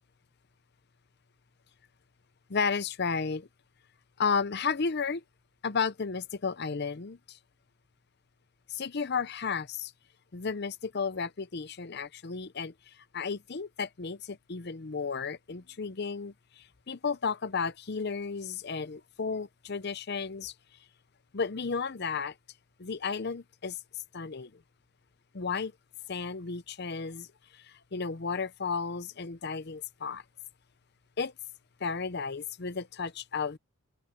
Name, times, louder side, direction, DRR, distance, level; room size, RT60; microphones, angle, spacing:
voice 1, 2.5-3.5 4.2-5.2 5.6-7.4 8.7-9.9 10.3-20.5 21.3-22.3 22.8-23.8 24.1-24.5 25.3-25.7 26.1-27.3 27.5-30.2 31.2-31.3 31.8-33.6, left 5 dB, 50° left, 0.6 m, -33 dB
open air
head